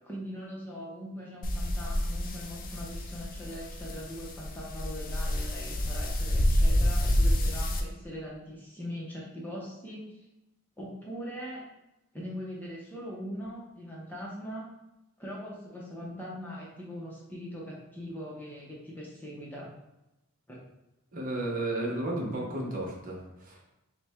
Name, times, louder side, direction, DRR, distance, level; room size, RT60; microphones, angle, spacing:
voice 1, 0.0-10.1 10.8-11.6 12.1-14.7 15.2-19.7 20.5-20.6 21.8-21.9, equal, 10° left, -5 dB, 0.7 m, -41 dB
sound 1, 1.4-7.8, equal, 40° left, 0.5 m, -28 dB
voice 2, 21.1-23.6, right 1 dB, 40° right, -2 dB, 0.9 m, -33 dB
5.7 x 2.2 x 3.5 m, 0.95 s
head